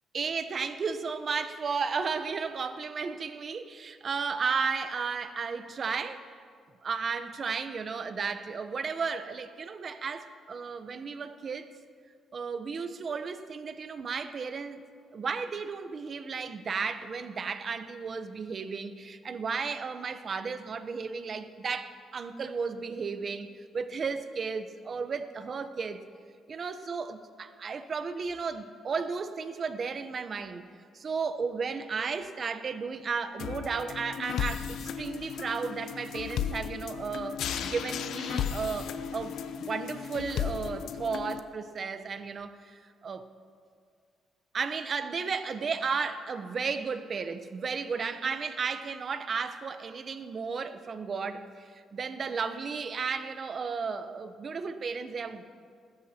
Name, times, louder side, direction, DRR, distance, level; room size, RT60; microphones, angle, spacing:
voice 1, 0.1-6.2 6.8-11.7 12.3-14.8 15.1-26.0 26.5-30.7 30.9-39.4 39.7-43.2 44.5-55.4, right 5 dB, 45° right, 10 dB, 0.9 m, -34 dB
sound 1, 33.4-41.4, left 8 dB, 75° left, 0.5 m, -35 dB
21.0 x 13.0 x 2.9 m, 2.1 s
cardioid pair, 90°, 0 cm